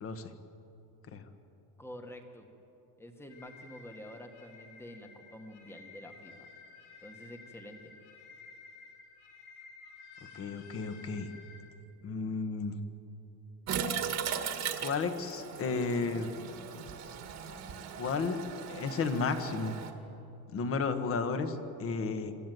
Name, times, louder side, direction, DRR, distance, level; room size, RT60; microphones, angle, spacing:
voice 1, 0.0-0.3 1.1-1.2 10.3-11.3 12.0-12.8 14.8-16.3 18.0-18.4 18.7-19.8 20.5-22.3, left 4 dB, 30° left, 8 dB, 1.4 m, -33 dB
voice 2, 1.8-2.5 3.0-6.5 7.0-7.9, equal, 5° left, 5 dB, 1.5 m, -48 dB
sound 1, 3.3-11.6, left 4 dB, 75° left, 5.2 m, -53 dB
Toilet flush, 13.7-19.9, right 7 dB, 35° right, 1.7 m, -38 dB
27.0 x 14.0 x 9.3 m, 2.9 s
cardioid pair, 170°, 46 cm